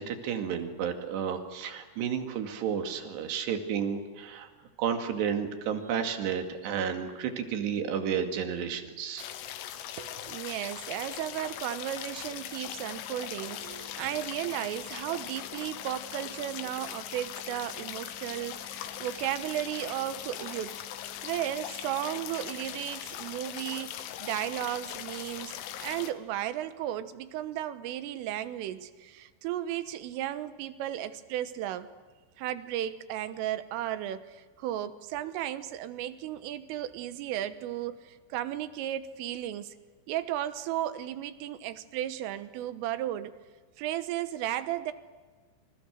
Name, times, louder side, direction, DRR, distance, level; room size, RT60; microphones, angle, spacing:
voice 1, 0.0-4.5 4.8-9.3, right 7 dB, 65° right, 4.2 m, -32 dB
sound 1, 9.2-26.1, left 11 dB, 90° left, 4.1 m, -40 dB
voice 2, 10.0-20.8 21.2-31.9 32.4-39.8 40.1-43.4 43.8-44.9, right 12 dB, 85° right, 3.8 m, -35 dB
29.5 x 29.0 x 6.5 m
omnidirectional pair, 5.7 m